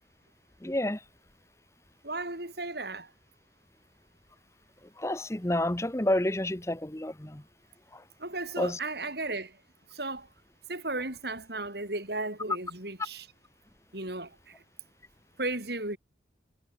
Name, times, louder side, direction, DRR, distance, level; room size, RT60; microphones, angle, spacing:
voice 1, 0.6-1.0 5.0-7.4 7.9-8.0 8.6-8.8, left 1 dB, 15° left, 1.0 m, -29 dB
voice 2, 2.0-3.1 8.2-9.6 9.9-10.3 10.7-13.3 13.9-14.6 15.4-16.0, right 2 dB, 60° right, 6.4 m, -35 dB
head